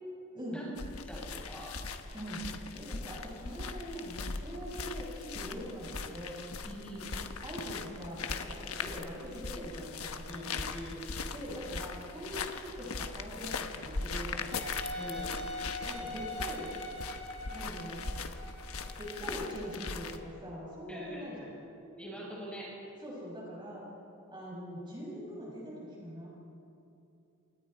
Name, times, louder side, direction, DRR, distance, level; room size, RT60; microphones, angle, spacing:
sound 1, 0.8-20.2, left 4 dB, 75° left, 1.3 m, -40 dB
voice 1, 1.1-1.8 6.6-7.1 10.3-11.0 14.9-15.3 20.9-21.5 22.0-22.8, equal, 5° left, -6 dB, 7.6 m, -44 dB
voice 2, 2.1-2.5 2.7-6.4 7.4-10.4 11.3-14.5 15.8-16.7 17.5-18.0 19.0-21.5 23.0-23.8 24.3-26.3, equal, 20° right, -5 dB, 6.5 m, -42 dB
Wind instrument woodwind instrument, 14.5-20.1, left 1 dB, 30° left, 7.3 m, -43 dB
28.5 x 28.5 x 4.5 m, 2.7 s
head